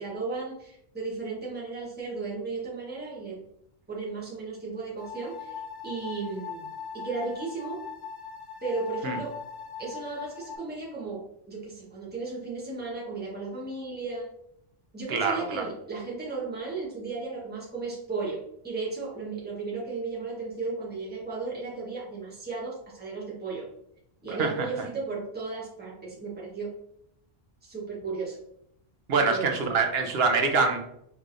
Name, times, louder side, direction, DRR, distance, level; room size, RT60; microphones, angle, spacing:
voice 1, 0.0-3.5 3.9-6.7 6.9-7.8 8.6-9.4 9.8-14.3 14.9-23.7 24.2-26.7 27.6-28.4 29.2-29.8, right 4 dB, 10° right, -5 dB, 1.1 m, -35 dB
sound 1, 5.0-10.6, left 6 dB, 30° left, 0.5 m, -40 dB
voice 2, 15.1-15.7 24.3-24.5 29.1-30.8, right 4 dB, 75° right, 4 dB, 1.0 m, -25 dB
4.7 x 3.3 x 2.6 m, 0.73 s
omnidirectional pair, 1.0 m